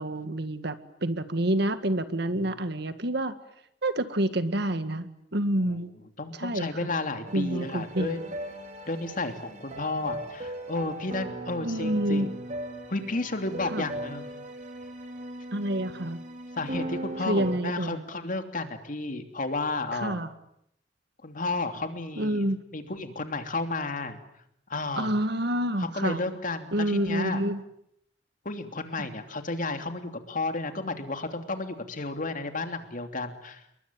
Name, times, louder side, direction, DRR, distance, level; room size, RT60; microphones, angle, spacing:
voice 1, 0.0-3.3 3.8-5.9 6.4-6.7 7.3-8.1 11.6-12.4 13.7-13.9 15.5-16.2 17.3-18.0 19.9-20.3 22.2-22.6 25.0-26.2 26.7-27.6 29.0-29.1, right 1 dB, 65° right, 11 dB, 1.9 m, -28 dB
voice 2, 6.2-8.2 8.9-12.3 12.9-14.3 16.5-20.2 21.2-22.5 22.7-24.2 24.7-25.1 25.8-27.4 28.4-33.6, left 2 dB, 45° left, 7 dB, 3.0 m, -32 dB
sound 1, 7.3-17.6, right 1 dB, 40° right, 3.8 m, -38 dB
28.5 x 22.5 x 9.1 m, 0.75 s
head